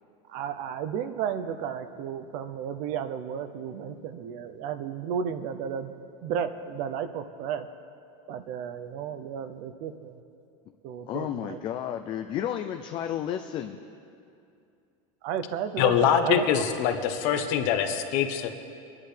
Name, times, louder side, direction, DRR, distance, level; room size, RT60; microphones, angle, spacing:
voice 1, 0.3-5.9 6.2-7.7 8.3-10.1 10.8-11.6 15.2-16.6, right 8 dB, 45° right, 11 dB, 0.6 m, -33 dB
voice 2, 11.1-13.8, left 10 dB, 30° left, 6 dB, 0.4 m, -32 dB
voice 3, 15.8-18.5, left 9 dB, 55° left, 6 dB, 1.0 m, -24 dB
23.0 x 10.5 x 3.3 m, 2.5 s
supercardioid pair, 160°, 17 cm